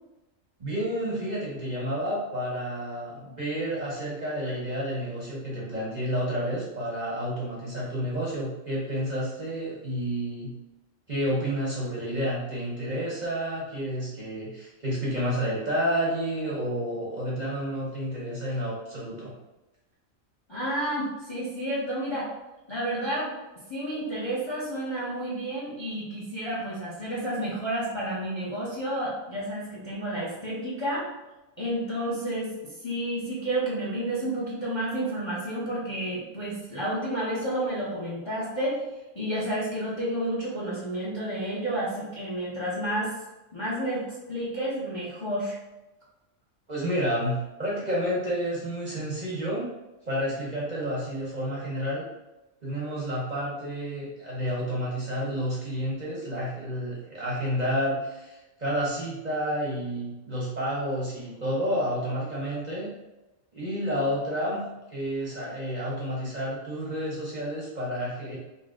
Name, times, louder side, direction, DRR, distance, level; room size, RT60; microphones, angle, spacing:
voice 1, 0.6-10.5 11.1-19.3 46.7-49.7 50.1-52.0 52.6-62.9 63.5-64.6 64.9-68.4, equal, 40° right, -6 dB, 0.8 m, -30 dB
voice 2, 20.5-22.3 22.7-23.3 23.7-31.1 31.6-38.8 39.1-43.1 43.5-45.6, right 1 dB, 25° left, -6 dB, 0.7 m, -30 dB
4.0 x 2.2 x 3.6 m, 1.0 s
omnidirectional pair, 1.4 m